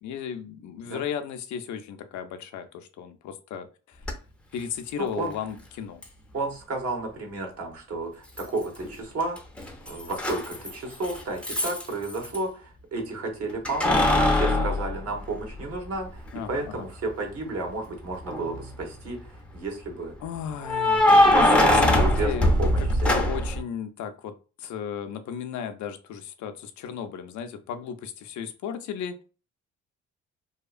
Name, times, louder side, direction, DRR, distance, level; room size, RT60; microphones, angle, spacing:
voice 1, 0.0-4.0 4.5-6.0 16.3-16.9 20.2-22.5 23.0-29.2, left 8 dB, 70° left, 8 dB, 0.5 m, -35 dB
Keys jangling, 4.0-4.1 6.0-6.1 8.4-8.9 9.2-12.4 13.7-15.8 16.3-16.4 18.1-18.7 20.6-23.6, left 1 dB, 5° left, 0.6 m, -22 dB
voice 2, 5.0-5.3 6.3-9.4 9.9-20.1 20.9-23.1, right 2 dB, 50° right, 2 dB, 1.0 m, -32 dB
2.8 x 2.3 x 2.4 m, 0.34 s
cardioid pair, 90°, 30 cm